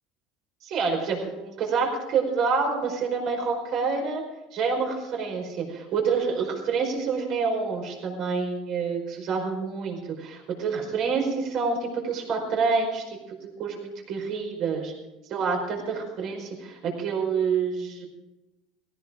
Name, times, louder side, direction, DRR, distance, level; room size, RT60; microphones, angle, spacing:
voice 1, 0.6-4.2 4.5-13.2 13.6-13.8 14.1-14.9 15.3-18.1, right 5 dB, 45° right, 2 dB, 4.9 m, -27 dB
18.5 x 18.0 x 3.8 m, 1.0 s
cardioid pair, 150°, 0 cm